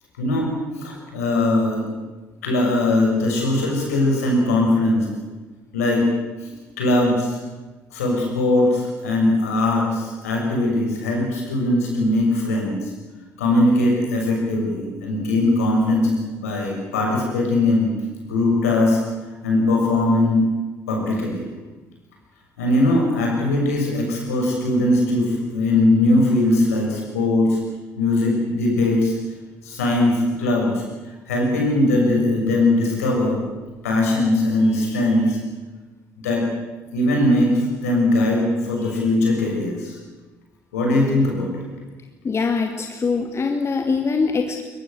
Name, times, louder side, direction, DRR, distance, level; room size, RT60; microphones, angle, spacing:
voice 1, 0.2-1.8 2.4-5.1 5.7-6.1 6.4-6.5 6.8-7.4 7.9-12.8 13.4-17.9 18.2-19.0 19.4-20.4 20.9-21.4 22.6-27.6 28.0-29.1 29.6-30.7 31.3-33.4 33.8-35.4 36.2-36.4 36.9-39.9 40.7-41.7, left 2 dB, 80° left, 0 dB, 6.6 m, -20 dB
voice 2, 42.2-44.6, left 4 dB, 35° left, 4 dB, 2.3 m, -23 dB
22.5 x 21.5 x 7.9 m, 1.2 s
figure-of-eight pair, 50°, 8 cm